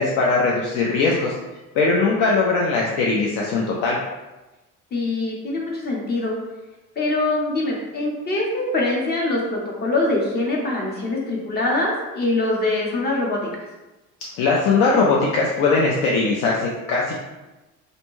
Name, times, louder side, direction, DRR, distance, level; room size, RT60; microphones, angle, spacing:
voice 1, 0.0-1.3 1.8-4.0 14.4-17.1, left 3 dB, 80° left, -3 dB, 0.5 m, -20 dB
voice 2, 4.9-6.4 7.0-13.4, left 2 dB, 35° left, -2 dB, 0.7 m, -23 dB
2.6 x 2.1 x 3.0 m, 1.1 s
cardioid pair, 125°, 30 cm